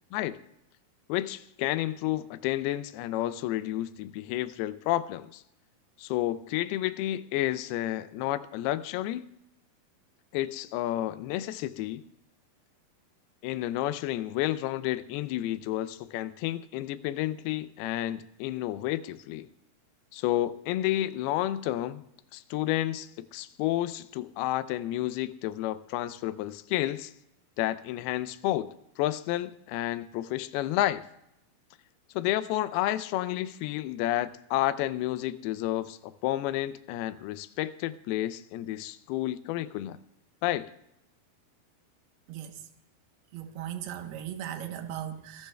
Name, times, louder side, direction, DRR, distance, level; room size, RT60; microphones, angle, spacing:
voice 1, 1.1-5.4 6.0-9.2 10.3-12.0 13.4-19.5 20.1-22.0 22.3-27.1 27.6-31.0 32.2-40.0 40.4-40.7, left 14 dB, 85° left, 13 dB, 2.6 m, -31 dB
voice 2, 42.3-42.6 43.3-45.5, right 10 dB, 85° right, 7 dB, 3.0 m, -38 dB
27.0 x 11.5 x 2.2 m, 0.81 s
omnidirectional pair, 4.5 m